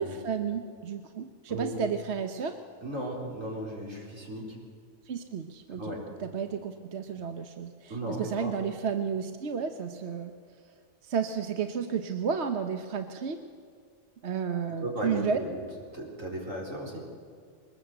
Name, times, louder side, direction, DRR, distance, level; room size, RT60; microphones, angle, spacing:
voice 1, 0.0-2.6 5.1-5.9 6.2-10.3 11.0-13.4 14.2-15.4, right 6 dB, 60° right, 7 dB, 1.2 m, -32 dB
voice 2, 2.8-4.6 5.7-6.0 7.9-8.5 14.8-15.6 15.9-17.1, right 1 dB, 85° right, -2 dB, 5.0 m, -35 dB
22.5 x 20.0 x 8.0 m, 2.2 s
omnidirectional pair, 1.3 m